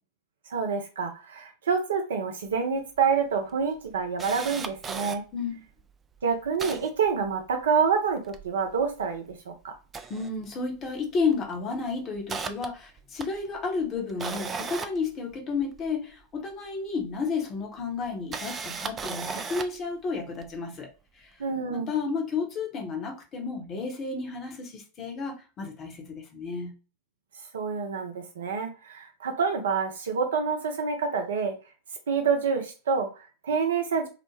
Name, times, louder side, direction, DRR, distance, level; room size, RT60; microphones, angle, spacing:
voice 1, 0.5-5.2 6.2-9.7 21.4-21.9 27.5-31.6 32.1-34.1, right 5 dB, 65° right, 0.6 m, -27 dB
Camera, 2.6-2.7 3.0-3.1 3.5-5.2 5.8-5.9 6.2-7.8 8.1-9.4 9.8-10.9 11.2-11.5 11.9-15.9 17.0-17.1 18.0-19.8 20.4-20.5, right 5 dB, 20° right, 0.3 m, -37 dB
voice 2, 5.3-5.6 10.1-20.9 21.2-21.3 21.7-26.7, left 4 dB, 30° left, 0.9 m, -32 dB
2.5 x 2.1 x 3.2 m
figure-of-eight pair, 90°, 0 cm